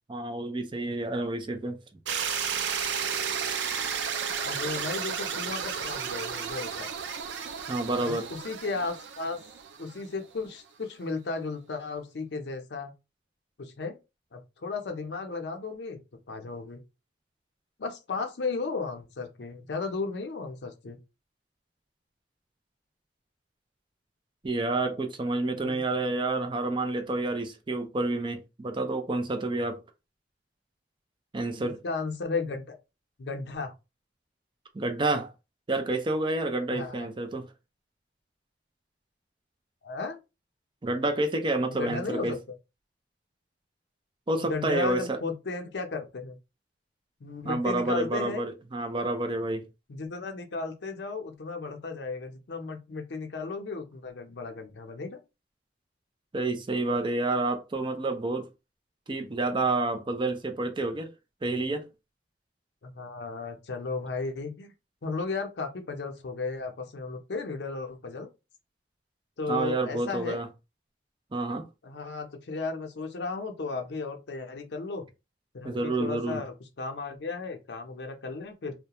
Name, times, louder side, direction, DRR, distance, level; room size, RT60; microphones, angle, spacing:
voice 1, 0.1-1.8 7.7-8.2 24.4-29.8 31.3-31.8 34.7-35.3 35.7-37.5 40.8-42.3 44.3-45.2 47.4-49.6 56.3-58.5 59.1-61.1 61.4-61.8 69.5-70.5 71.3-71.7 75.6-76.4, right 2 dB, 25° right, 0.4 m, -29 dB
sound 1, 2.1-10.1, right 7 dB, 90° right, 0.4 m, -33 dB
voice 2, 4.4-6.9 8.0-9.4 9.8-12.9 13.6-14.0 14.3-16.0 16.3-16.8 17.8-21.0 25.6-25.7 31.6-32.8 33.2-33.7 36.7-37.1 39.8-40.2 41.7-42.4 44.4-46.4 47.2-48.4 49.9-55.2 62.8-64.7 65.0-68.3 69.4-70.4 71.8-75.0 75.5-78.7, left 4 dB, 70° left, 0.5 m, -35 dB
2.3 x 2.1 x 2.8 m
head